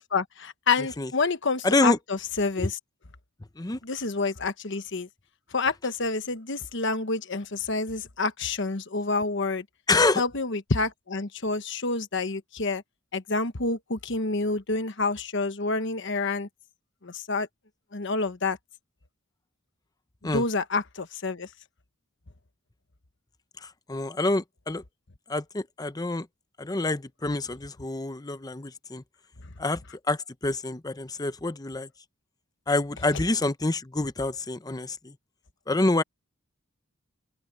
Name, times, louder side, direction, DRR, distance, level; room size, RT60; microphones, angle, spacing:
voice 1, 0.1-2.8 3.8-5.1 5.5-9.6 10.2-12.8 13.1-16.5 17.0-17.5 17.9-18.6 20.3-21.5, left 3 dB, 60° left, 1.2 m, -28 dB
voice 2, 0.8-1.1 1.6-2.0 2.6-2.7 3.6-3.8 9.9-10.2 20.2-20.5 23.6-24.8 25.3-26.3 26.6-29.0 29.6-29.8 30.1-31.9 32.7-35.1 35.7-36.0, left 2 dB, 20° left, 0.7 m, -27 dB
open air
head